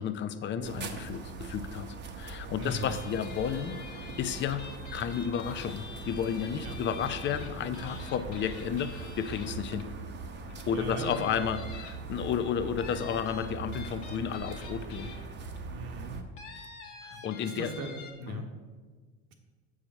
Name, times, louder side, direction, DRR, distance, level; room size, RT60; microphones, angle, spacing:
voice 1, 0.0-1.9 2.2-4.6 4.9-9.8 10.7-15.1 17.0-17.7 18.3-18.4, left 8 dB, 35° left, 11 dB, 0.6 m, -32 dB
sound 1, 0.6-16.2, right 4 dB, 35° right, 1.0 m, -41 dB
sound 2, 2.6-10.0 10.5-10.6 11.0-12.3 12.8-15.6 16.4-18.1, left 5 dB, 65° left, 1.4 m, -47 dB
voice 2, 2.6-2.9 6.6-6.8 10.7-11.4 15.7-16.1 16.5-16.6 17.1-18.5, right 3 dB, 70° right, 3 dB, 1.4 m, -40 dB
7.1 x 4.9 x 6.2 m, 1.4 s
supercardioid pair, 95°, 32 cm